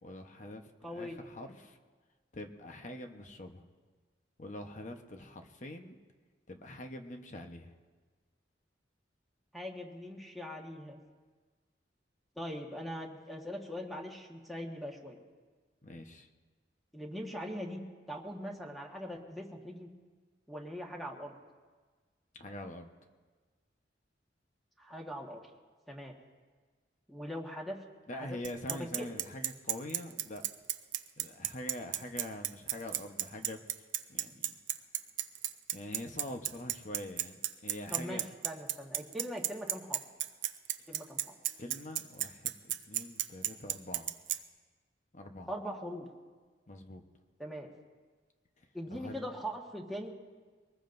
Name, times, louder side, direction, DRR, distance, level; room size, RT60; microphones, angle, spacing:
voice 1, 0.0-1.8 2.3-3.6 4.4-6.0 6.5-7.7 15.8-16.3 22.4-22.9 28.1-30.4 31.2-33.6 34.1-34.5 35.7-38.3 41.6-44.1 45.1-45.5 46.7-47.0 48.9-49.3, left 1 dB, 40° left, 5 dB, 1.0 m, -44 dB
voice 2, 0.8-1.2 9.5-11.0 12.3-15.2 16.9-17.8 18.1-19.9 20.5-21.3 24.8-25.4 25.9-26.1 27.1-27.8 28.1-28.4 28.7-29.1 37.9-40.0 40.9-41.3 45.5-46.1 47.4-47.7 48.7-50.1, equal, ahead, -1 dB, 1.5 m, -41 dB
Bicycle, 28.4-44.4, right 13 dB, 80° right, 0.6 m, -33 dB
23.5 x 20.0 x 2.7 m, 1.4 s
head